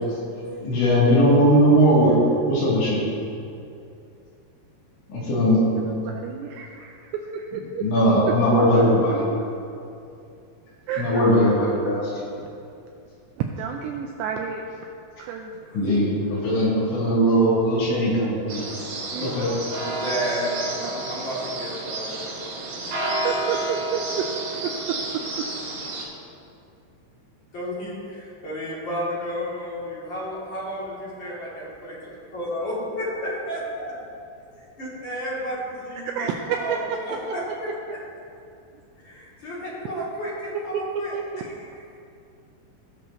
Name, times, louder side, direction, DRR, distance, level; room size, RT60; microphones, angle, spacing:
voice 1, 0.6-3.0 5.1-5.9 7.8-9.2 11.0-12.1 15.7-18.6 19.2-19.5, equal, 70° left, -8 dB, 4.6 m, -19 dB
voice 2, 5.8-7.8 8.8-8.9 10.9-11.0 12.6-12.7 13.4-14.7 15.2-15.6 19.1-20.2 20.8-21.0 23.1-25.5 36.2-37.4 39.4-39.5 39.9-40.0 40.7-41.4, right 7 dB, 90° right, 2 dB, 2.5 m, -31 dB
voice 3, 15.6-16.0 16.3-16.7 19.9-22.2 27.5-33.9 34.6-38.0 39.0-41.7, equal, 35° left, -8 dB, 2.0 m, -32 dB
sound 1, 18.5-26.0, right 2 dB, 65° right, 4.2 m, -30 dB
17.5 x 6.7 x 2.9 m, 2.6 s
omnidirectional pair, 5.5 m